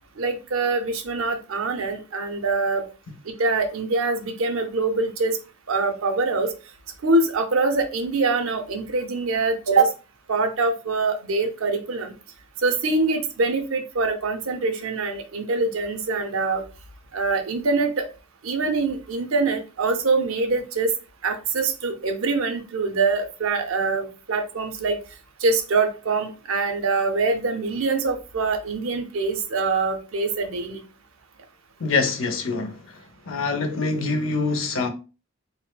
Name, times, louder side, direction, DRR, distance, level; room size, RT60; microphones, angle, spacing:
voice 1, 0.2-2.9 3.4-5.4 5.7-6.5 7.0-9.9 10.3-12.1 12.6-16.6 17.1-18.1 18.4-20.9 21.2-25.0 25.4-30.8, right 3 dB, 85° right, 0.6 m, -24 dB
voice 2, 31.8-33.0 33.3-34.9, left 4 dB, 70° left, 0.6 m, -25 dB
4.1 x 2.1 x 2.2 m
head